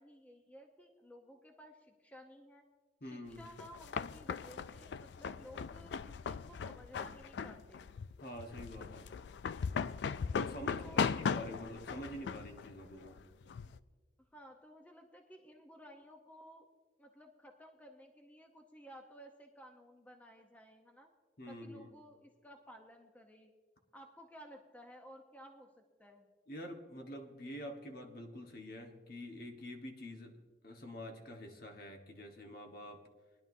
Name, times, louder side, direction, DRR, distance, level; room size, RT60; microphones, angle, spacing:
voice 1, 0.0-2.7 3.0-7.9 10.8-11.2 14.2-16.7 17.0-21.1 21.5-23.5 23.9-26.3, equal, 10° left, 3 dB, 0.8 m, -56 dB
voice 2, 3.0-3.5 8.2-9.1 10.4-13.2 21.4-21.9 26.5-33.0, equal, 55° left, 3 dB, 1.3 m, -47 dB
sound 1, 3.3-13.8, left 6 dB, 80° left, 0.3 m, -38 dB
21.0 x 11.0 x 2.7 m, 1.4 s
head